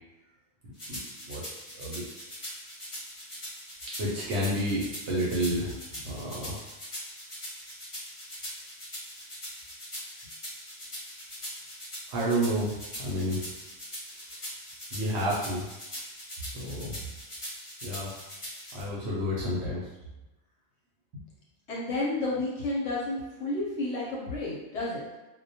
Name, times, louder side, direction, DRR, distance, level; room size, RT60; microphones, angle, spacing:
sound 1, 0.8-18.8, equal, 30° left, 0.7 m, -41 dB
voice 1, 1.7-2.3 3.9-6.6 12.1-13.5 14.9-15.7 16.4-17.0 17.8-18.1 18.7-19.9, equal, 65° right, -6 dB, 0.8 m, -30 dB
voice 2, 21.7-25.1, left 2 dB, 65° left, -5 dB, 0.8 m, -31 dB
2.2 x 2.1 x 2.7 m, 1.0 s
omnidirectional pair, 1.4 m